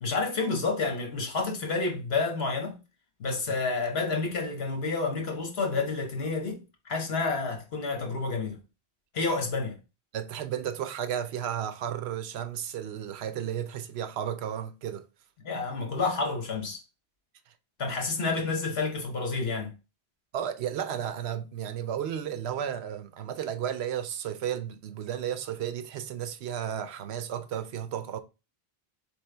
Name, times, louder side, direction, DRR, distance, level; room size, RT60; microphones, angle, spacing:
voice 1, 0.0-2.8 3.2-6.6 6.8-8.6 9.1-9.8 15.4-16.8 17.8-19.7, left 4 dB, 75° left, 1.4 m, -29 dB
voice 2, 10.1-15.1 20.3-28.2, right 9 dB, 80° right, 0.9 m, -33 dB
4.3 x 3.3 x 3.3 m
omnidirectional pair, 1.1 m